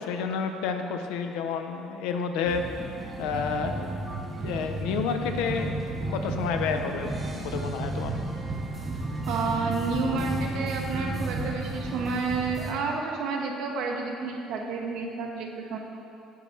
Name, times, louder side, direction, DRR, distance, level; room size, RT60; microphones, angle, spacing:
voice 1, 0.0-2.6 3.2-3.9 4.4-8.2, left 6 dB, 85° left, 6 dB, 0.4 m, -30 dB
sound 1, 2.5-12.7, right 2 dB, 20° right, 0.6 m, -33 dB
voice 2, 9.3-15.8, right 4 dB, 70° right, 0 dB, 0.7 m, -30 dB
7.0 x 3.1 x 5.7 m, 2.6 s
cardioid pair, 110°, 0 cm